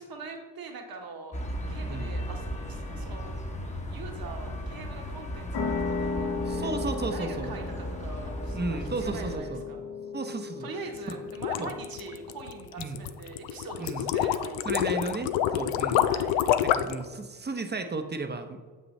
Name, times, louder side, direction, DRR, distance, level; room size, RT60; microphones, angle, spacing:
voice 1, 0.0-3.3 3.9-6.7 7.1-9.8 10.6-15.0 16.0-16.4, right 4 dB, 50° right, 2 dB, 1.4 m, -43 dB
sound 1, 1.3-9.4, equal, 15° left, 1.0 m, -36 dB
sound 2, 5.5-12.7, left 4 dB, 55° left, 1.0 m, -36 dB
voice 2, 6.5-7.5 8.5-9.6 10.1-10.7 11.1-11.2 11.6-11.7 12.8-13.0 13.8-14.1 14.6-16.1 16.6-18.6, right 3 dB, 25° right, 7 dB, 0.8 m, -34 dB
sound 3, 11.0-17.0, left 10 dB, 80° left, 0.5 m, -27 dB
7.2 x 5.4 x 3.3 m, 1.5 s
supercardioid pair, 55°, 44 cm